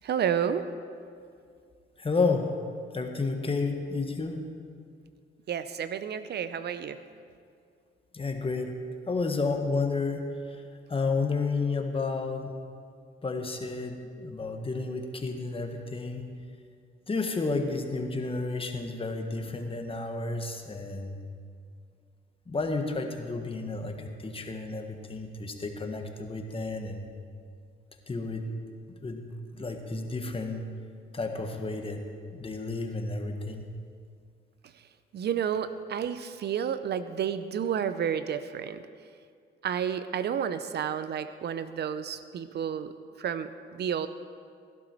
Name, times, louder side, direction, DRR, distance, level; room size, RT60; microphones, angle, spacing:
voice 1, 0.0-0.7 5.5-7.0 35.1-38.8 39.6-42.9 43.2-44.1, right 8 dB, 55° right, 12 dB, 0.6 m, -31 dB
voice 2, 2.0-2.5 2.9-4.4 8.1-8.7 9.1-10.6 10.9-12.5 13.2-16.3 17.1-21.2 22.5-27.1 28.1-28.5 29.0-29.2 29.5-30.7 31.1-32.0 32.3-33.6, left 3 dB, 25° left, 4 dB, 1.5 m, -31 dB
16.5 x 11.5 x 4.5 m, 2.2 s
cardioid pair, 90°, 20 cm